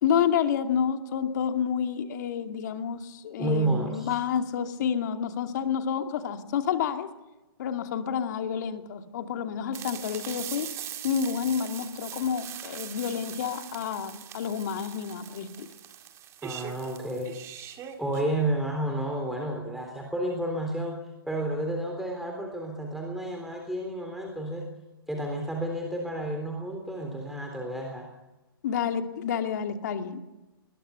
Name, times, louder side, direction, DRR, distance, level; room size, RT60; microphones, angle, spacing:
voice 1, 0.0-7.1 7.6-10.7 11.0-15.7 28.6-30.3, left 8 dB, 50° left, 6 dB, 2.5 m, -29 dB
voice 2, 3.4-4.1 16.4-17.3 18.0-24.7 25.1-28.1, right 1 dB, ahead, 1 dB, 3.6 m, -31 dB
sound 1, 9.7-18.2, right 11 dB, 25° right, 2.2 m, -41 dB
22.5 x 21.5 x 7.0 m, 1.0 s
figure-of-eight pair, 125°, 12 cm